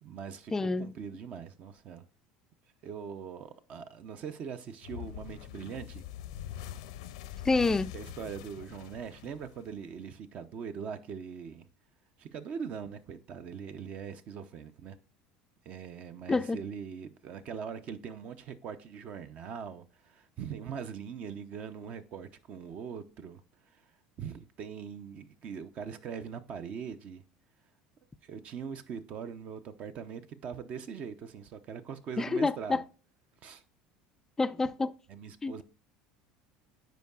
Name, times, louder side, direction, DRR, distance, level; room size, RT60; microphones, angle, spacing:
voice 1, 0.0-2.0 2.8-6.0 6.6-6.7 7.9-11.6 12.2-15.0 15.6-23.8 24.2-27.2 28.2-32.8 33.4-33.6 35.1-35.6, right 7 dB, 50° right, 0.6 m, -41 dB
voice 2, 0.5-0.9 7.4-7.9 16.3-16.6 32.2-32.8 34.4-34.9 35.4-35.6, left 3 dB, 15° left, 0.3 m, -28 dB
sound 1, 4.8-10.0, left 12 dB, 85° left, 0.5 m, -44 dB
9.2 x 4.6 x 2.4 m
supercardioid pair, 95°, 3 cm